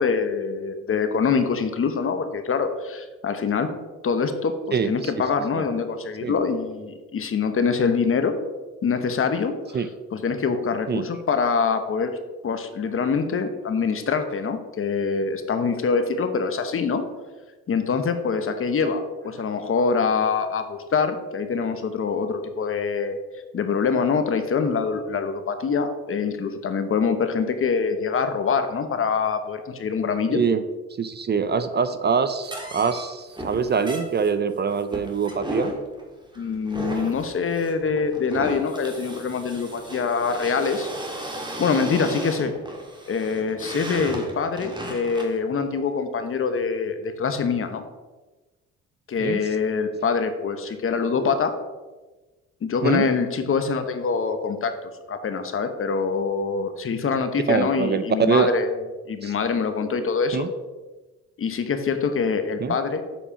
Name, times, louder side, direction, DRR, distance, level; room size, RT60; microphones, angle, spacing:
voice 1, 0.0-3.7 4.0-8.3 8.8-9.8 10.1-12.1 12.4-17.0 17.7-23.2 23.5-30.4 36.4-40.9 41.6-42.5 43.1-47.8 49.1-51.6 52.6-54.7 55.1-58.8 59.1-60.4 61.4-63.0, left 5 dB, 45° left, 8 dB, 1.0 m, -24 dB
voice 2, 4.7-5.1 5.5-5.6 6.2-6.3 9.7-9.9 10.9-11.0 30.3-30.6 31.0-35.7 49.2-49.4 52.8-53.1 57.5-58.5 59.2-59.3 60.3-60.5 62.6-62.7, right 6 dB, 35° right, 12 dB, 0.5 m, -24 dB
sound 1, 32.4-45.4, right 1 dB, 15° right, 1.7 m, -35 dB
7.3 x 4.3 x 5.6 m, 1.2 s
cardioid pair, 90°, 30 cm